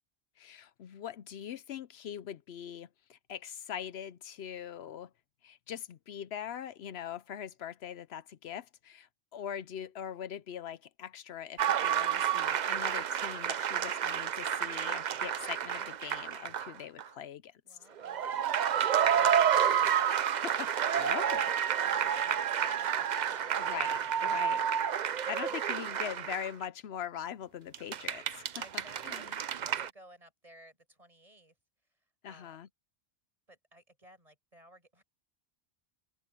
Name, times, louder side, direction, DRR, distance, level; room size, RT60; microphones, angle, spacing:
voice 1, 0.4-5.1 5.4-17.8 20.1-21.5 23.6-24.7 25.3-28.5 29.0-29.4 32.2-32.7, left 9 dB, 75° left, 0.9 m, -42 dB
sound 1, 11.6-16.7 17.0-17.1 18.0-26.7 27.7-29.9, right 9 dB, 50° right, 0.6 m, -30 dB
voice 2, 17.6-20.0 21.8-23.8 25.4-25.6 28.5-31.5 32.3-32.6 33.5-35.0, equal, 35° right, 6.1 m, -55 dB
open air
omnidirectional pair, 1.1 m